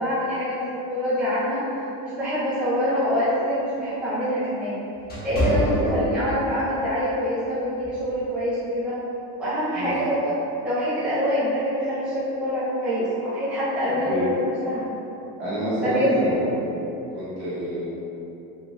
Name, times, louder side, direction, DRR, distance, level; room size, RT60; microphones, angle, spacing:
voice 1, 0.0-1.6 2.0-4.8 5.2-9.0 9.4-10.3 10.6-14.9 15.8-16.3, equal, 5° right, -15 dB, 1.5 m, -25 dB
sound 1, 2.8-6.5 7.0-7.2 7.8-8.1, equal, 25° left, 1.1 m, -28 dB
voice 2, 5.4-6.5 9.7-10.0 13.8-14.2 15.4-16.6 17.1-17.9, right 1 dB, 35° right, -12 dB, 1.4 m, -28 dB
5.5 x 3.5 x 2.6 m, 3.0 s
cardioid pair, 175°, 34 cm